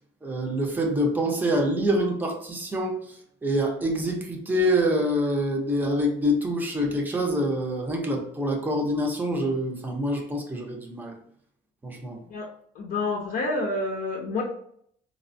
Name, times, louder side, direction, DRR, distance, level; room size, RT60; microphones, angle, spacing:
voice 1, 0.2-11.2 11.8-12.2, equal, 10° right, 1 dB, 0.6 m, -26 dB
voice 2, 12.7-14.4, left 2 dB, 55° left, -1 dB, 0.6 m, -28 dB
3.2 x 2.1 x 2.5 m, 0.65 s
cardioid pair, 110°, 17 cm